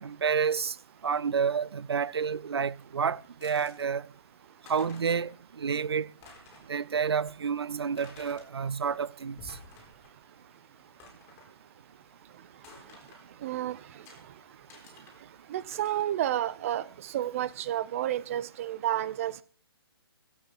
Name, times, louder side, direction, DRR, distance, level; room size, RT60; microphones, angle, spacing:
voice 1, 0.0-0.7 1.0-4.0 4.7-6.1 6.7-9.4, right 6 dB, 80° right, 0.7 m, -29 dB
sound 1, 3.4-3.9 4.4-4.5 4.6-5.3 5.7-5.8 6.1-6.7 7.2-7.3 8.0-8.5 9.2-10.2 10.4-10.5 11.0-11.5 12.6-13.3 14.1-14.2 14.7-15.2 15.7-16.1, left 3 dB, 20° left, 3.9 m, -52 dB
voice 2, 13.4-13.8 15.5-16.8 17.1-19.4, right 12 dB, 35° right, 0.8 m, -30 dB
15.0 x 8.6 x 4.4 m
hypercardioid pair, 155°, 13 cm